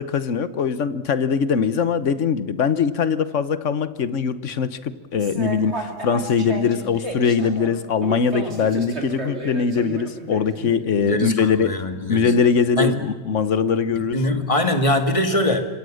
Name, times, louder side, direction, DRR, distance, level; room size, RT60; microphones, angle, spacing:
voice 1, 0.0-11.7 12.1-14.2, left 6 dB, 70° left, 14 dB, 1.4 m, -21 dB
sound 1, 5.2-10.8, right 2 dB, 55° right, 3.5 m, -32 dB
voice 2, 11.0-12.3 12.8-13.0 14.0-15.6, left 1 dB, 25° left, 6 dB, 2.2 m, -22 dB
27.0 x 23.5 x 6.5 m, 1.3 s
omnidirectional pair, 1.3 m